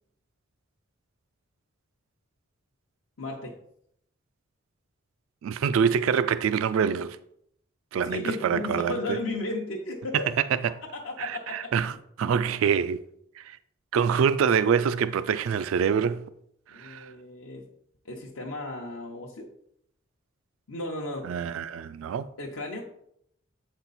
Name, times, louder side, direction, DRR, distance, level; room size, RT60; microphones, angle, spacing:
voice 1, 3.2-3.5 8.0-10.3 11.0-11.7 16.7-17.7 18.0-19.5 20.7-21.3 22.4-22.8, left 2 dB, 80° left, 0.9 m, -34 dB
voice 2, 5.4-7.2 7.9-9.2 10.6-10.8 11.2-13.0 13.4-13.6 13.9-16.3 16.7-17.1 21.2-22.3, right 7 dB, 80° right, 0.3 m, -25 dB
7.5 x 4.3 x 4.0 m
head